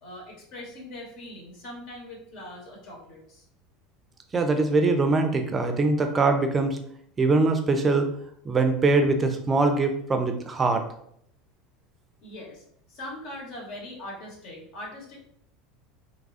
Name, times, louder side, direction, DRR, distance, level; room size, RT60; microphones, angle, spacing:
voice 1, 0.0-3.4 12.2-12.6 12.9-15.2, left 1 dB, 55° left, -2 dB, 1.0 m, -41 dB
voice 2, 4.3-6.8 7.2-8.1 8.4-10.9, right 3 dB, 25° right, 6 dB, 0.4 m, -22 dB
3.1 x 2.3 x 2.5 m, 0.68 s
figure-of-eight pair, 75°, 0 cm